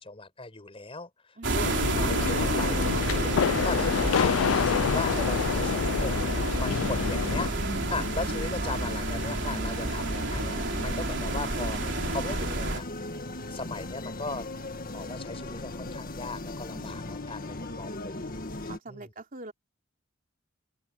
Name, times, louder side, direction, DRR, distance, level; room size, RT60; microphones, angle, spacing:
voice 1, 0.0-12.8 13.5-14.5 14.8-18.3 18.6-19.1, left 3 dB, 30° left, 4.9 m, -38 dB
voice 2, 1.4-1.7 7.8-8.8 10.6-10.9 16.7-17.3 18.7-19.5, right 3 dB, 45° right, 3.2 m, -45 dB
sound 1, 1.4-12.8, right 2 dB, 65° right, 3.5 m, -30 dB
sound 2, 1.6-7.5, left 7 dB, 90° left, 0.4 m, -27 dB
sound 3, 6.6-18.8, left 2 dB, 45° left, 1.7 m, -37 dB
open air
head